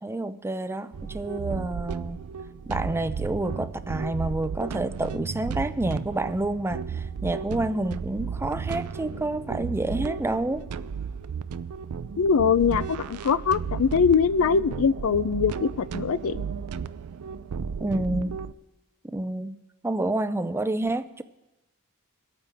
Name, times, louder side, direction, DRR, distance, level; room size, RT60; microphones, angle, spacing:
voice 1, 0.0-2.2 2.7-10.6 17.8-18.3 19.0-21.2, right 2 dB, 10° right, 0.4 m, -29 dB
sound 1, 0.9-18.5, right 6 dB, 90° right, 0.4 m, -34 dB
voice 2, 12.2-16.4, left 6 dB, 65° left, 0.4 m, -22 dB
23.5 x 9.0 x 3.4 m
head